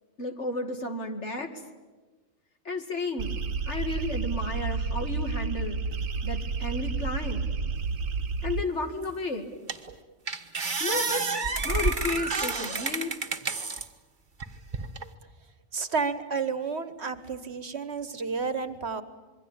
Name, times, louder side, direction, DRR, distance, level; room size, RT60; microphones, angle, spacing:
voice 1, 0.2-1.5 2.6-3.4 3.7-5.8 6.2-7.5 8.4-9.5 10.8-11.3 11.6-13.1, left 2 dB, 60° left, 6 dB, 2.5 m, -32 dB
sound 1, 3.2-8.6, right 4 dB, 80° right, 1.4 m, -30 dB
sound 2, 9.0-9.1 9.7-9.9 10.3-13.9 14.4-15.1, right 4 dB, 40° right, 1.4 m, -29 dB
voice 2, 15.7-19.0, right 5 dB, 55° right, 13 dB, 1.5 m, -31 dB
27.0 x 23.0 x 8.8 m, 1.3 s
omnidirectional pair, 1.4 m